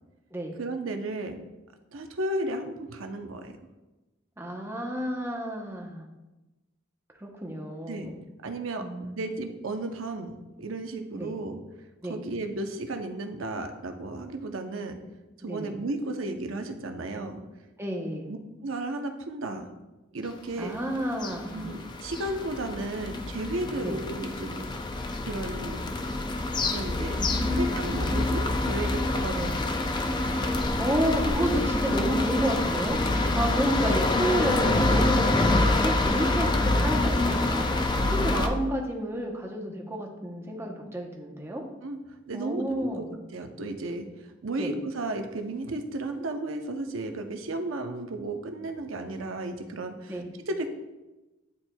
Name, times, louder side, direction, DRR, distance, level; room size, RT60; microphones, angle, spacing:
voice 1, 0.6-1.4 1.9-3.5 7.9-8.1 8.4-8.8 9.1-10.3 10.6-11.6 12.1-15.0 15.4-17.4 18.3-18.4 18.6-19.7 20.1-20.7 21.5-24.7 25.2-25.9 26.4-27.2 27.5-29.5 41.8-42.0 42.3-43.0 43.3-44.1 44.4-50.2 50.5-50.7, right 2 dB, 85° right, 6 dB, 0.7 m, -34 dB
voice 2, 4.4-6.1 7.2-8.2 8.8-9.2 11.1-11.4 12.0-12.2 15.4-15.8 17.8-18.3 20.6-21.7 23.8-24.0 27.3-28.1 29.3-29.6 30.5-41.6 42.3-43.1 44.6-44.7 50.1-50.3, equal, 10° right, 0 dB, 0.8 m, -31 dB
sound 1, 20.7-38.5, left 2 dB, 20° left, 0.4 m, -26 dB
9.8 x 4.4 x 2.2 m, 1.1 s
head